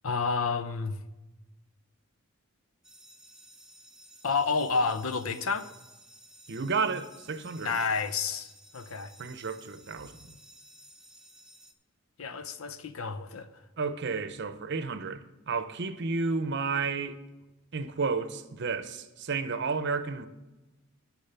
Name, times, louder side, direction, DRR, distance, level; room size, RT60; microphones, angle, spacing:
voice 1, 0.0-1.0 4.2-5.7 7.6-9.1 12.2-13.5, left 4 dB, 75° left, 0.7 m, -30 dB
sound 1, 2.8-11.7, right 1 dB, 5° right, 0.7 m, -54 dB
voice 2, 6.5-7.8 9.2-10.4 13.8-17.2 17.7-20.3, right 4 dB, 55° right, 0.7 m, -32 dB
10.0 x 6.3 x 6.8 m
head